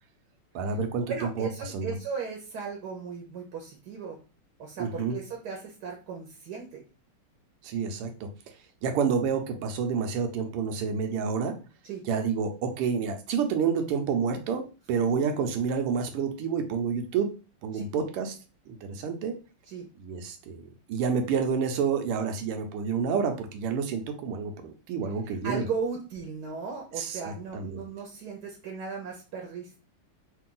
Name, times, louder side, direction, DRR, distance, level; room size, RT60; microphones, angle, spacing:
voice 1, 0.5-1.5 1.7-1.9 4.8-5.2 7.6-8.3 8.8-11.5 12.1-14.6 14.9-17.3 17.6-18.4 18.7-19.3 20.0-20.6 20.9-25.6 27.0-27.9, right 6 dB, 90° right, 6 dB, 1.7 m, -29 dB
voice 2, 1.1-4.2 4.6-6.8 11.8-12.0 17.7-17.8 19.7-19.9 25.2-29.8, right 5 dB, 60° right, 1 dB, 1.1 m, -36 dB
3.9 x 2.6 x 3.8 m, 0.33 s
omnidirectional pair, 2.4 m